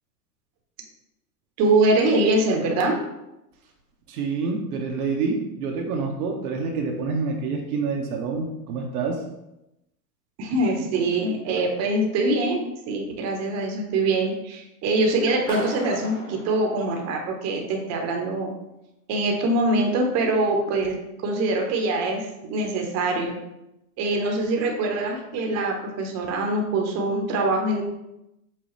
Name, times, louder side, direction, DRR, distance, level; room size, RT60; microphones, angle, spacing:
voice 1, 1.6-3.0 10.4-18.5 19.1-21.0 21.2-23.4 24.0-27.8, right 2 dB, 35° right, 2 dB, 0.9 m, -23 dB
voice 2, 4.1-9.2, right 4 dB, 65° right, 1 dB, 0.9 m, -27 dB
Clapping, 15.5-17.5, equal, 10° left, 0.3 m, -37 dB
5.7 x 2.3 x 3.1 m, 0.89 s
hypercardioid pair, 110°, 47 cm